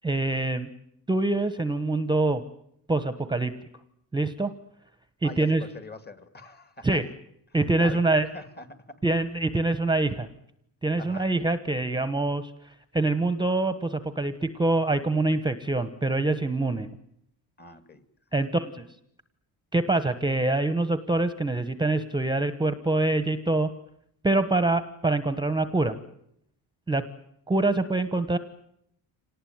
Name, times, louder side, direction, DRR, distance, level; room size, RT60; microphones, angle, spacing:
voice 1, 0.0-0.7 1.1-2.4 2.9-3.5 4.1-4.5 5.2-5.6 6.8-7.0 7.5-8.3 9.0-10.3 10.8-12.5 12.9-16.9 18.3-18.8 19.7-23.7 24.2-26.0 26.9-27.1 27.5-28.4, right 2 dB, 10° right, 11 dB, 1.1 m, -25 dB
voice 2, 5.2-7.0 7.7-8.0 8.3-9.0 11.0-11.3 17.6-18.0 18.4-18.5, left 2 dB, 25° left, 11 dB, 2.2 m, -43 dB
26.5 x 19.0 x 9.4 m, 0.76 s
cardioid pair, 140°, 42 cm